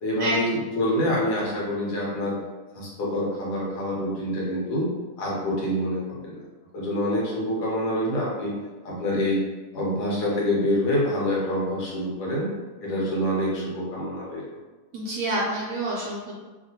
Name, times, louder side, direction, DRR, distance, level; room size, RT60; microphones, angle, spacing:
voice 1, 0.0-2.4 2.7-4.9 5.2-6.4 6.7-8.5 8.8-9.5 9.7-12.5 12.8-14.4, left 1 dB, 85° left, -5 dB, 1.5 m, -26 dB
voice 2, 14.9-16.4, right 2 dB, 70° right, -4 dB, 0.9 m, -28 dB
2.8 x 2.7 x 2.8 m, 1.3 s
omnidirectional pair, 1.7 m